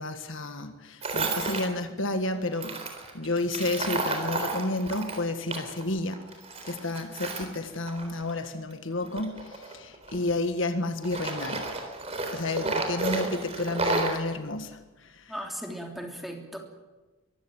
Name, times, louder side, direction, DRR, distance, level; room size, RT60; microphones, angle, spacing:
voice 1, 0.0-2.8 3.1-6.2 6.7-11.7 12.3-15.3, left 2 dB, 60° left, 8 dB, 1.7 m, -31 dB
Tools, 1.0-1.7 2.5-5.8 6.1-8.4 9.0-10.7 11.0-14.2, right 3 dB, 30° right, 3.8 m, -32 dB
voice 2, 15.3-16.6, equal, ahead, 2 dB, 3.1 m, -37 dB
23.5 x 15.5 x 9.3 m, 1.1 s
head